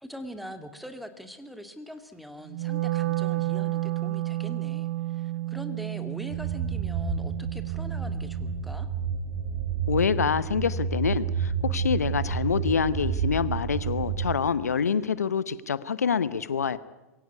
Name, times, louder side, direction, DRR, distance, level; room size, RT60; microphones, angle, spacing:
voice 1, 0.0-8.9, equal, ahead, 8 dB, 2.2 m, -42 dB
Wind instrument woodwind instrument, 2.5-8.7, right 17 dB, 55° right, 0.8 m, -31 dB
sound 1, 6.3-14.3, right 6 dB, 25° right, 5.6 m, -30 dB
voice 2, 9.9-16.8, left 6 dB, 80° left, 16 dB, 0.9 m, -26 dB
22.5 x 17.0 x 9.6 m, 1.1 s
hypercardioid pair, 100°, 8 cm